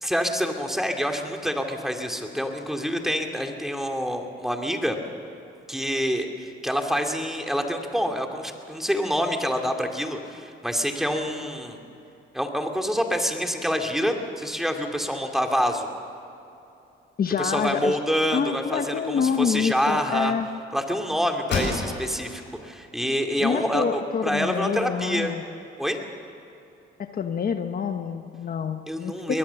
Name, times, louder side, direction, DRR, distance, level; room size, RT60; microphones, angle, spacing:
voice 1, 0.0-5.0 5.7-11.8 12.3-15.9 17.4-20.3 20.7-25.3 25.8-26.0 28.9-29.4, equal, ahead, 3 dB, 2.5 m, -27 dB
voice 2, 17.2-18.0 18.3-20.5 23.4-25.4 27.0-29.4, left 7 dB, 45° left, 7 dB, 1.1 m, -27 dB
sound 1, 21.5-22.3 22.8-22.9 23.4-24.3, left 3 dB, 65° left, 7.0 m, -30 dB
23.0 x 19.5 x 7.1 m, 2.8 s
cardioid pair, 90°, 20 cm